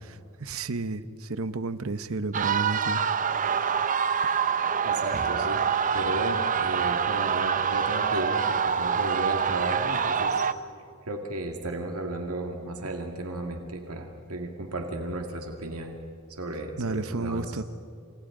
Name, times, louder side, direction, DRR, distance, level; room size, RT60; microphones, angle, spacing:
voice 1, 0.0-3.0 3.4-3.7 16.8-17.6, right 3 dB, 70° right, 12 dB, 0.9 m, -32 dB
sound 1, 2.3-10.5, right 7 dB, 35° right, 0.7 m, -26 dB
voice 2, 4.8-5.6 5.9-10.5 11.0-16.0 16.3-17.5, right 1 dB, 85° right, 3 dB, 2.0 m, -34 dB
28.5 x 27.5 x 3.9 m, 2.4 s
head